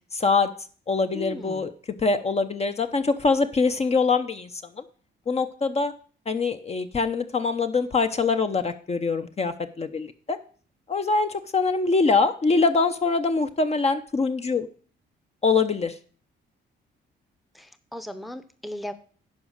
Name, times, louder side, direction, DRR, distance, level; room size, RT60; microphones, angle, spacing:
voice 1, 0.1-0.5 0.9-1.7 2.0-4.5 4.8-4.9 5.3-5.9 6.3-10.4 10.9-14.7 15.4-15.9, left 4 dB, 30° left, 8 dB, 0.8 m, -23 dB
voice 2, 1.1-1.6 17.5-18.9, left 1 dB, ahead, 11 dB, 0.8 m, -37 dB
10.5 x 4.9 x 6.4 m, 0.43 s
cardioid pair, 90°, 20 cm